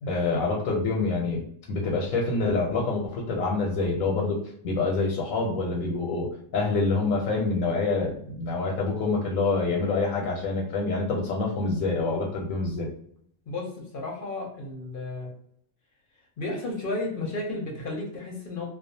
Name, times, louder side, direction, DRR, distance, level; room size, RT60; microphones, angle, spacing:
voice 1, 0.0-1.4 1.7-12.9, left 3 dB, 90° left, -1 dB, 1.0 m, -26 dB
voice 2, 13.5-15.3 16.4-18.7, left 2 dB, 55° left, 0 dB, 0.6 m, -33 dB
2.3 x 2.3 x 2.6 m, 0.68 s
omnidirectional pair, 1.4 m